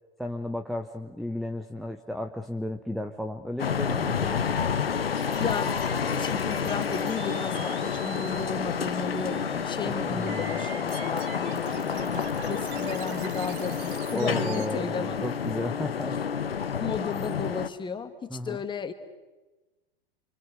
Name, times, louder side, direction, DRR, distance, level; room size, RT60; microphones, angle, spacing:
voice 1, 0.2-4.5 9.8-10.6 14.1-16.2 18.3-18.6, left 1 dB, ahead, 6 dB, 1.2 m, -33 dB
sound 1, 3.6-17.7, left 7 dB, 75° left, 1.3 m, -29 dB
sound 2, 5.2-14.6, right 8 dB, 40° right, 4.0 m, -44 dB
voice 2, 5.4-5.8 6.1-15.2 16.8-18.9, left 5 dB, 15° left, 8 dB, 2.3 m, -34 dB
28.5 x 26.0 x 6.4 m, 1.1 s
figure-of-eight pair, 95°, 30 cm